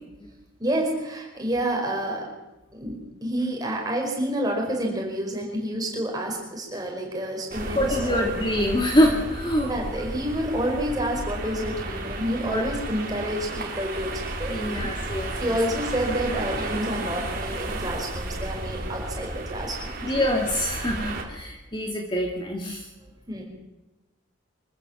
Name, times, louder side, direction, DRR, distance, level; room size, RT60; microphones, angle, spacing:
voice 1, 0.6-2.2 2.7-8.3 9.6-14.9 15.4-20.2 23.3-23.4, right 1 dB, 20° right, 0 dB, 5.2 m, -29 dB
sound 1, 7.5-21.2, right 2 dB, 45° right, 3.2 m, -33 dB
voice 2, 7.7-9.7 12.4-12.6 14.5-15.5 20.0-22.9, equal, 25° left, 2 dB, 2.2 m, -25 dB
25.0 x 14.5 x 7.2 m, 1.0 s
head